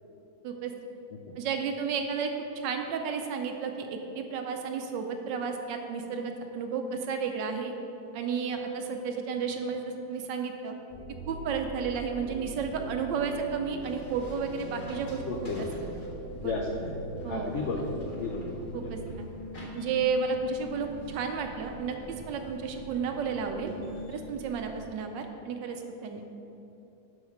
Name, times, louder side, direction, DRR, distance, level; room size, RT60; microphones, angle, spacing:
voice 1, 0.4-0.7 1.4-7.7 8.1-10.8 11.3-15.7 16.4-16.6 17.2-17.5 18.7-19.3 19.7-23.7 24.1-26.2, right 5 dB, 75° right, 5 dB, 1.4 m, -32 dB
sound 1, 10.9-19.0, right 2 dB, 10° left, 1.0 m, -42 dB
sound 2, 13.8-24.9, right 1 dB, 30° left, 1.4 m, -44 dB
voice 2, 15.3-15.7 16.4-16.9 17.3-18.9, left 3 dB, 80° left, 0 dB, 0.6 m, -33 dB
7.4 x 5.7 x 5.8 m, 2.8 s
omnidirectional pair, 2.0 m